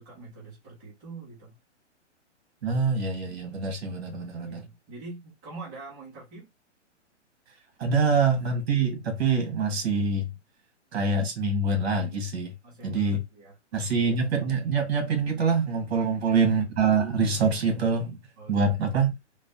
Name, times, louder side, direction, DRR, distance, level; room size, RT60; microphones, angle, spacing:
voice 1, 0.0-1.5 4.0-6.5 7.9-8.1 12.6-13.9 15.9-16.4 18.4-18.7, right 3 dB, 10° right, 0.4 m, -45 dB
voice 2, 2.6-4.6 7.8-10.3 10.9-12.5 12.8-13.2 13.7-18.2 18.5-19.1, right 4 dB, 60° right, 1.3 m, -25 dB
3.1 x 2.0 x 2.6 m
hypercardioid pair, 150°, 36 cm